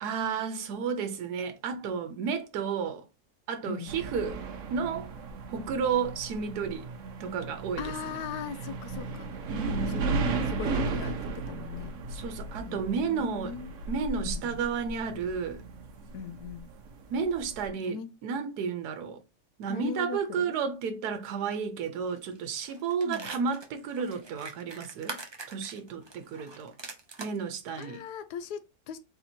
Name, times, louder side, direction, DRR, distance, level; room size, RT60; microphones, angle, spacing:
voice 1, 0.0-3.0 3.5-4.4 4.7-5.1 5.5-6.9 7.2-8.2 9.5-10.2 12.1-13.5 13.9-15.6 17.1-19.2 19.6-25.2 25.5-26.7 27.2-28.0, right 6 dB, 80° right, 1.3 m, -32 dB
sound 1, 3.9-17.7, right 3 dB, 60° right, 1.0 m, -35 dB
voice 2, 7.8-9.3 9.9-10.0 10.3-11.9 12.7-13.7 14.3-14.6 16.1-16.7 17.8-18.1 19.7-20.5 23.0-23.3 27.8-29.0, left 7 dB, 80° left, 1.1 m, -39 dB
sound 2, 22.1-22.4 22.6-27.4 27.8-27.9, right 3 dB, 40° right, 0.3 m, -43 dB
4.0 x 2.9 x 4.2 m
omnidirectional pair, 1.7 m